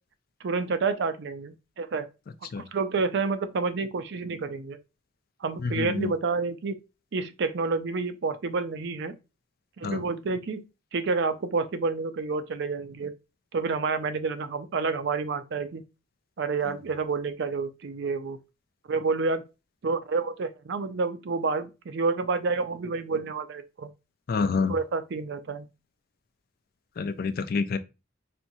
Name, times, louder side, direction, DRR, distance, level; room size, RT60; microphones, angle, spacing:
voice 1, 0.4-2.1 2.6-4.8 5.4-6.8 7.1-9.1 9.8-10.6 10.9-13.1 13.5-15.8 16.4-18.4 18.9-19.4 19.8-23.9 24.7-25.7, right 4 dB, 65° right, 0.5 m, -29 dB
voice 2, 5.8-6.1 9.8-10.0 24.3-24.7 27.0-27.8, left 4 dB, 50° left, 0.4 m, -27 dB
4.3 x 2.7 x 2.6 m
head